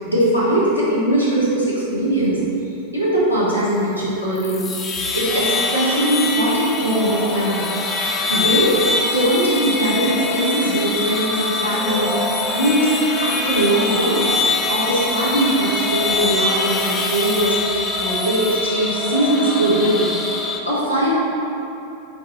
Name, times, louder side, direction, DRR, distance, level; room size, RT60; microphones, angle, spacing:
voice 1, 0.0-2.4 2.9-7.6 8.3-12.9 13.2-21.2, right 1 dB, 90° left, -8 dB, 0.8 m, -20 dB
sound 1, 4.4-20.6, left 3 dB, 20° left, 0.3 m, -23 dB
4.4 x 2.6 x 2.7 m, 2.9 s
figure-of-eight pair, 90°, 0 cm